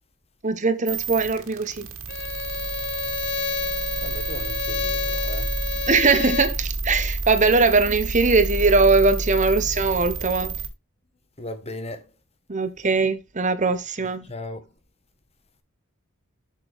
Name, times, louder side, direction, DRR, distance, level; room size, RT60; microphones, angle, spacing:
voice 1, 0.4-1.9 5.9-10.6 12.5-14.3, right 3 dB, 35° right, 1.0 m, -21 dB
sound 1, 0.9-10.7, right 3 dB, 70° right, 2.2 m, -30 dB
Bowed string instrument, 2.1-6.6, left 7 dB, 55° left, 0.9 m, -30 dB
voice 2, 4.0-5.5 11.4-12.1 14.0-14.7, left 2 dB, 30° left, 1.4 m, -37 dB
7.6 x 6.7 x 3.5 m
head